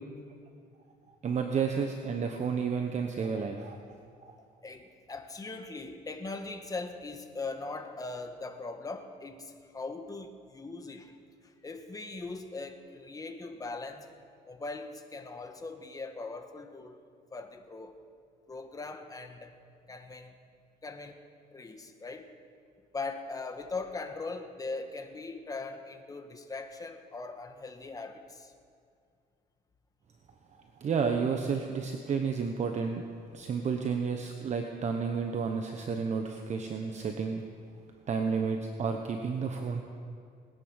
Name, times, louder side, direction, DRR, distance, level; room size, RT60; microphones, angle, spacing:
voice 1, 1.2-3.8 4.2-4.3 30.8-33.0 33.3-37.4 38.1-39.8, right 5 dB, 45° right, 4 dB, 1.1 m, -31 dB
voice 2, 4.6-11.2 11.4-14.1 14.5-17.0 17.3-17.9 18.5-19.5 19.9-20.3 20.8-21.2 21.5-22.3 22.9-28.5, left 3 dB, 20° left, 6 dB, 1.5 m, -40 dB
20.5 x 10.5 x 6.4 m, 2.3 s
cardioid pair, 110°, 17 cm